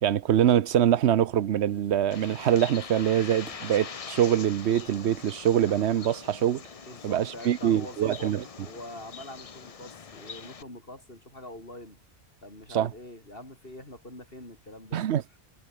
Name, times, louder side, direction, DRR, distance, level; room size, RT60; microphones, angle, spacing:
voice 1, 0.0-6.6 7.0-8.4 12.7-12.9 14.9-15.2, right 10 dB, 90° right, 1.0 m, -24 dB
sound 1, 1.6-9.8, equal, 5° right, 7.6 m, -59 dB
Bird, 2.1-10.6, left 6 dB, 40° left, 0.7 m, -43 dB
voice 2, 6.9-12.0 12.4-15.0, left 1 dB, 60° left, 7.0 m, -44 dB
omnidirectional pair, 1.1 m